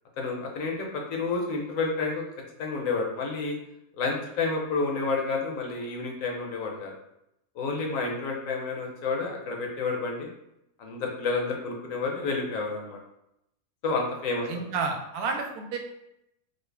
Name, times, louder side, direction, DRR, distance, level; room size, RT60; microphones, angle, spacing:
voice 1, 0.2-2.2 2.6-3.5 4.0-6.9 7.6-10.3 10.8-13.0 13.8-14.7, left 3 dB, 70° left, 1 dB, 1.0 m, -30 dB
voice 2, 14.4-15.8, right 4 dB, 90° right, 3 dB, 1.1 m, -30 dB
3.8 x 2.1 x 3.3 m, 0.83 s
omnidirectional pair, 1.5 m